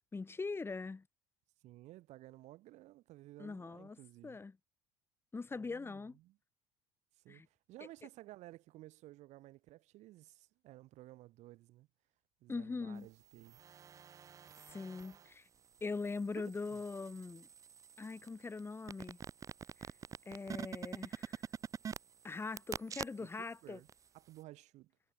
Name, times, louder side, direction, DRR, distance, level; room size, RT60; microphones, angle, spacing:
voice 1, 0.1-1.1 3.4-4.0 4.2-4.6 5.3-6.2 7.3-7.5 12.5-13.1 14.7-15.5 15.8-17.5 18.0-19.2 20.3-21.4 22.2-23.8, left 4 dB, 15° left, 1.1 m, -42 dB
voice 2, 1.6-4.4 5.5-6.4 7.1-11.9 12.4-13.6 16.4-16.8 23.2-23.9 24.1-24.9, right 17 dB, 60° right, 4.2 m, -55 dB
sound 1, 13.3-15.3 15.8-23.5 23.9-24.0, right 7 dB, 25° right, 0.3 m, -47 dB
hypercardioid pair, 75°, 13 cm